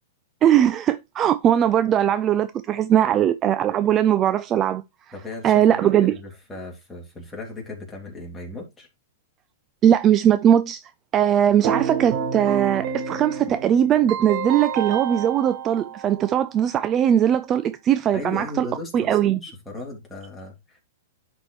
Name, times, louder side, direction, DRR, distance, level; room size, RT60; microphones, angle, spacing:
voice 1, 0.4-4.8 5.4-6.1 9.8-10.8 11.1-18.7 18.9-19.4, right 10 dB, 25° right, 0.4 m, -20 dB
voice 2, 5.1-8.9 18.1-20.8, left 2 dB, 10° left, 3.0 m, -37 dB
Keyboard (musical), 11.6-16.6, right 7 dB, 45° right, 1.4 m, -29 dB
10.5 x 4.3 x 3.1 m
hypercardioid pair, 145°, 0 cm